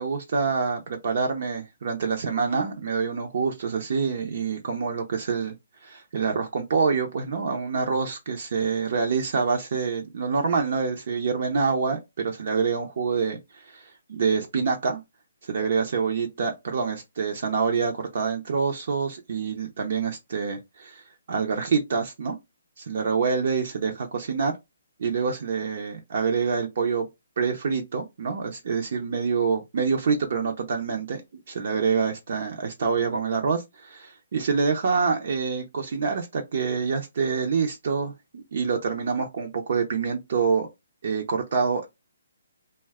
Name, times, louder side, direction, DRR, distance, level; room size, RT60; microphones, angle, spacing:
voice 1, 0.0-5.5 5.8-13.8 14.1-15.0 15.5-21.0 21.3-22.4 22.8-24.6 25.0-27.1 27.4-31.2 31.5-40.7 41.0-41.9, right 5 dB, 50° right, 0.6 m, -26 dB
2.6 x 2.2 x 3.4 m
hypercardioid pair, 170°, 0 cm